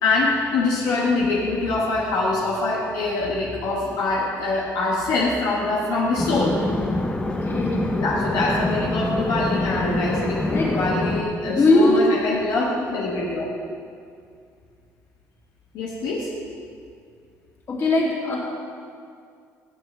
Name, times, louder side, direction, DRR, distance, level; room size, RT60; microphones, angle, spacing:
voice 1, 0.0-6.6 8.0-13.5 15.7-16.3, left 3 dB, 75° left, -4 dB, 1.3 m, -24 dB
sound 1, 6.2-11.2, left 2 dB, 15° left, 0.8 m, -25 dB
voice 2, 7.3-7.9 10.5-10.7 11.5-12.1 17.7-18.4, left 2 dB, 40° left, -4 dB, 2.7 m, -20 dB
14.5 x 7.5 x 3.3 m, 2.3 s
cardioid pair, 95°, 7 cm